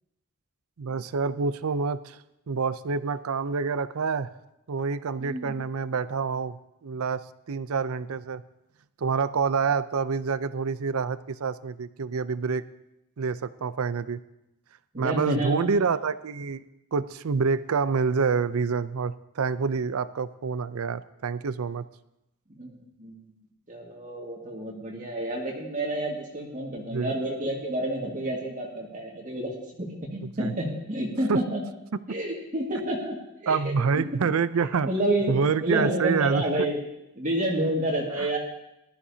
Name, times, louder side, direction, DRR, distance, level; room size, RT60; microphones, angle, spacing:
voice 1, 0.8-2.2 2.5-4.3 4.7-6.6 6.8-7.2 7.5-8.4 9.0-12.6 13.2-14.2 15.0-16.7 16.9-21.8 26.9-27.1 30.2-30.5 31.3-31.4 33.5-34.9 35.3-36.7 38.2-38.3, right 5 dB, 90° right, 15 dB, 0.5 m, -27 dB
voice 2, 5.2-5.5 14.9-15.7 22.5-23.2 23.7-31.6 32.1-34.0 34.8-36.8 37.2-38.4, right 1 dB, 35° right, -2 dB, 1.9 m, -29 dB
19.5 x 13.0 x 2.8 m, 0.88 s
head